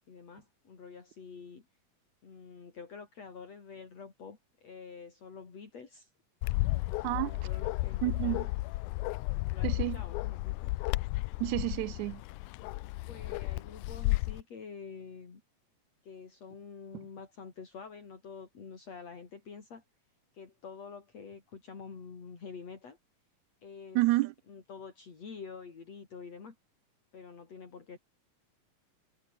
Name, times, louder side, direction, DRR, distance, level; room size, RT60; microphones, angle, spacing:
voice 1, 0.1-1.6 2.2-6.1 7.1-8.4 9.5-10.7 13.1-15.4 16.0-19.8 20.3-23.0 23.6-24.0 24.5-26.6 27.1-28.0, left 5 dB, 50° left, 5.0 m, -47 dB
Bark, 6.4-14.4, left 21 dB, 80° left, 1.9 m, -33 dB
voice 2, 8.0-8.5 9.6-10.0 11.4-12.2 24.0-24.3, right 19 dB, 75° right, 1.8 m, -29 dB
omnidirectional pair, 3.8 m